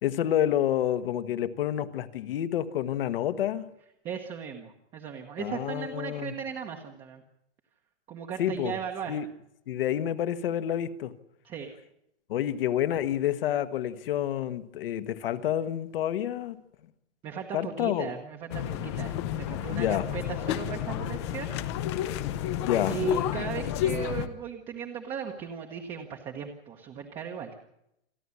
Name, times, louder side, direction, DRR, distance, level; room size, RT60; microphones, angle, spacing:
voice 1, 0.0-3.7 5.4-6.4 8.4-8.7 9.1-9.3 9.7-11.1 12.3-16.6 17.5-18.1 19.7-20.1 22.6-23.0, left 11 dB, 55° left, 1.4 m, -28 dB
voice 2, 4.0-7.2 8.1-9.2 11.4-11.7 17.2-21.6 22.9-27.5, right 8 dB, 15° right, 1.1 m, -37 dB
sound 1, 18.5-24.3, left 11 dB, 25° left, 0.8 m, -31 dB
28.0 x 11.0 x 9.8 m
supercardioid pair, 175°, 34 cm